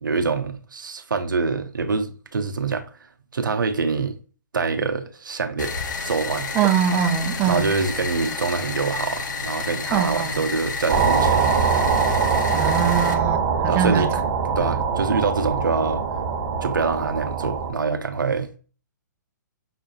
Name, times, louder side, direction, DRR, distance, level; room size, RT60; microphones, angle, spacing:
voice 1, 0.0-2.9 3.3-4.1 4.5-5.7 6.0-6.5 7.4-11.5 13.7-14.1 14.6-16.0 16.6-18.5, right 4 dB, 85° right, 0.5 m, -25 dB
sound 1, 5.6-13.1, left 4 dB, 70° left, 0.7 m, -30 dB
voice 2, 6.5-7.8 9.9-10.4 12.5-14.1 14.6-14.8, right 8 dB, 20° right, 0.4 m, -23 dB
sound 2, 10.9-17.7, right 6 dB, 45° right, 1.3 m, -22 dB
5.6 x 2.5 x 2.4 m
hypercardioid pair, 135°, 10 cm